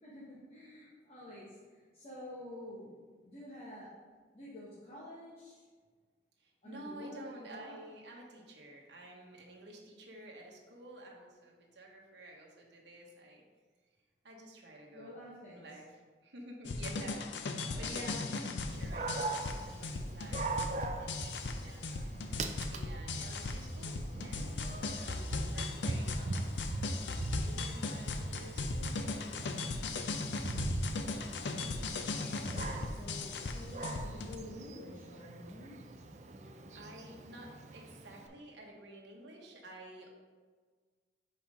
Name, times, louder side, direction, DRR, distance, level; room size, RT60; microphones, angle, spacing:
voice 1, 0.0-3.9 4.3-5.6 6.6-7.8 14.9-15.7 17.6-18.8 31.4-35.8, left 1 dB, 35° left, -9 dB, 1.2 m, -50 dB
voice 2, 6.4-13.4 14.2-15.1 15.5-22.0 22.7-26.5 27.3-29.7 30.5-30.6 36.7-40.1, right 1 dB, 80° right, -1 dB, 1.1 m, -51 dB
sound 1, 16.6-34.3, left 3 dB, 85° left, 0.5 m, -38 dB
Dog, 18.7-38.3, right 2 dB, 40° right, 0.4 m, -41 dB
5.8 x 4.2 x 5.0 m, 1.5 s
head